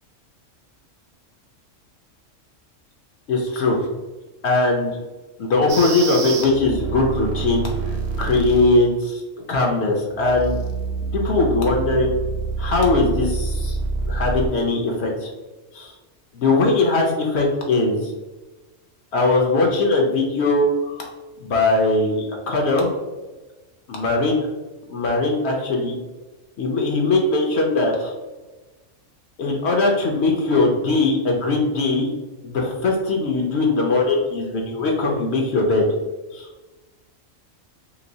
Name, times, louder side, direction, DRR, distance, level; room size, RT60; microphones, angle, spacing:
voice 1, 3.3-3.8 4.4-5.0 5.4-7.6 8.2-9.2 9.5-10.6 11.1-12.1 12.6-13.8 14.1-15.3 15.7-15.9 16.3-18.1 19.1-21.1 21.4-22.9 23.9-24.4 24.9-25.9 26.6-28.1 29.4-32.1 32.4-35.8 36.3-36.5, left 2 dB, 65° left, 0 dB, 0.8 m, -20 dB
sound 1, 5.7-8.8 10.2-14.5, right 4 dB, 65° right, 0.8 m, -27 dB
3.0 x 2.8 x 2.6 m, 1.2 s
omnidirectional pair, 1.3 m